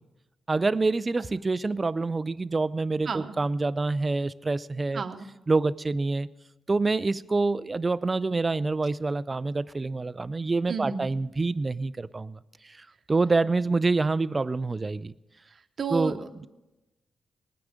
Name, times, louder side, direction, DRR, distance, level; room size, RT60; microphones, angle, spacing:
voice 1, 0.5-5.0 5.5-6.3 6.7-12.4 13.1-15.1 15.9-16.5, right 3 dB, 25° right, 17 dB, 0.4 m, -26 dB
voice 2, 3.1-3.4 4.9-5.3 10.7-11.1 15.8-16.5, right 5 dB, 50° right, 7 dB, 0.9 m, -32 dB
19.5 x 9.7 x 5.0 m, 0.99 s
cardioid pair, 115°, 0 cm